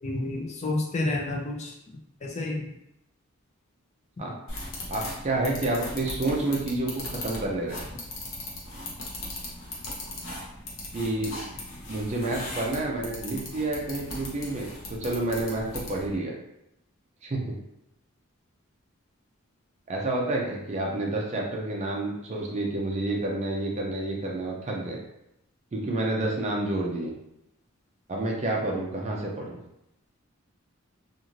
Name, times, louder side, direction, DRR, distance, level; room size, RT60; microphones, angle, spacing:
voice 1, 0.0-1.7 2.2-2.7, left 2 dB, 35° left, -1 dB, 0.5 m, -29 dB
sound 1, 4.5-16.1, left 1 dB, 65° left, 0.8 m, -38 dB
voice 2, 4.9-7.8 10.9-11.4 11.9-16.3 17.2-17.5 19.9-25.0 25.7-27.1 28.1-29.6, right 2 dB, 35° right, -1 dB, 0.4 m, -29 dB
2.5 x 2.4 x 3.0 m, 0.83 s
head